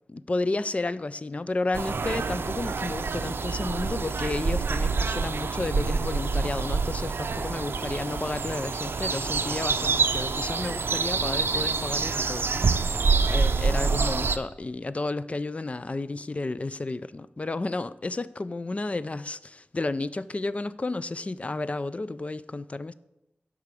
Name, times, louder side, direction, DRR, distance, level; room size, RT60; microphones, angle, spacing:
voice 1, 0.1-22.9, left 2 dB, 35° left, 0.3 m, -32 dB
sound 1, 1.7-14.4, right 4 dB, 80° right, 0.5 m, -27 dB
8.1 x 4.9 x 6.8 m
wide cardioid pair, 85°, 4 cm